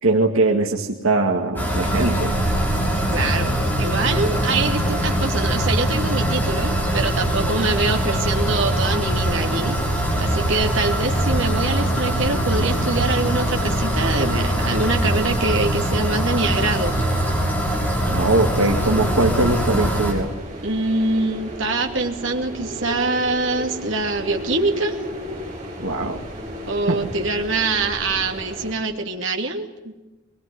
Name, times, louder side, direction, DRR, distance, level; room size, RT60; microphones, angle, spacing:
voice 1, 0.0-2.4 18.1-20.3 25.8-26.2 26.9-27.0, right 2 dB, 80° right, 1 dB, 2.2 m, -21 dB
sound 1, 1.6-20.1, right 1 dB, 10° left, 6.4 m, -22 dB
voice 2, 3.1-9.8 10.2-16.9 20.6-25.0 26.7-29.9, right 3 dB, 65° right, 3 dB, 2.7 m, -24 dB
sound 2, 18.7-28.7, equal, 30° right, 7.5 m, -34 dB
23.5 x 21.5 x 9.8 m, 1.1 s
head